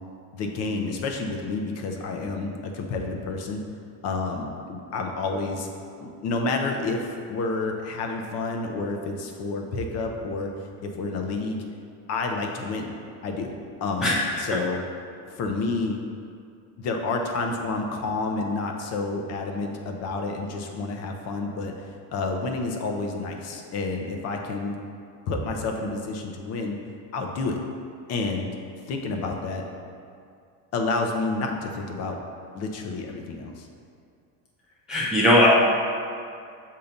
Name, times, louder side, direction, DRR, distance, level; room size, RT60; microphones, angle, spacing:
voice 1, 0.3-3.6 4.0-5.7 6.0-10.5 10.8-11.6 12.1-12.9 13.2-13.5 13.8-14.8 15.3-16.0 16.8-24.8 25.3-26.8 27.1-27.6 28.1-28.5 28.9-29.6 30.7-32.2 32.5-33.7, left 3 dB, 40° left, 2 dB, 0.6 m, -29 dB
voice 2, 34.9-35.5, left 1 dB, ahead, -6 dB, 0.3 m, -19 dB
6.8 x 2.8 x 5.0 m, 2.4 s
cardioid pair, 165°, 37 cm